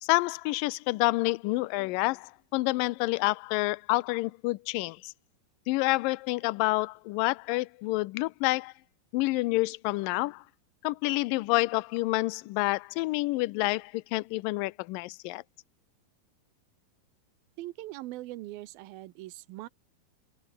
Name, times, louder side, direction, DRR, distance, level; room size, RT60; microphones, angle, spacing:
voice 1, 0.0-5.1 5.7-8.7 9.1-10.4 10.8-15.4, left 22 dB, 80° left, 2.2 m, -28 dB
voice 2, 17.6-19.7, right 17 dB, 80° right, 2.6 m, -41 dB
omnidirectional pair, 4.3 m